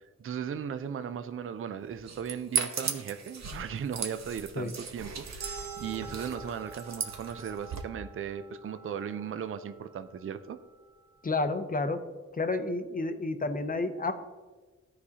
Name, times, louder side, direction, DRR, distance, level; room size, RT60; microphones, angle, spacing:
voice 1, 0.0-10.6, right 8 dB, 45° right, 11 dB, 0.4 m, -37 dB
sound 1, 1.9-7.8, right 5 dB, 60° right, 0.8 m, -37 dB
sound 2, 5.4-10.6, right 5 dB, 85° right, 1.5 m, -46 dB
voice 2, 11.2-12.0 12.3-14.1, left 3 dB, 30° left, 8 dB, 0.6 m, -30 dB
14.0 x 4.8 x 2.8 m, 1.3 s
wide cardioid pair, 120°, 31 cm